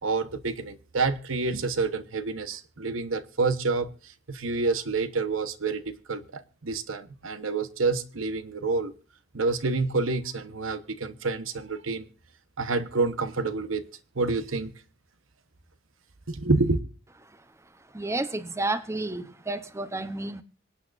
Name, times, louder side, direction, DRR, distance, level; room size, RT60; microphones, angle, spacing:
voice 1, 0.0-8.9 9.3-12.1 12.6-13.8 14.1-14.7 16.3-16.8, right 3 dB, 75° right, 1.1 m, -28 dB
voice 2, 17.9-20.4, right 2 dB, 15° right, 0.8 m, -31 dB
25.5 x 8.8 x 2.6 m
head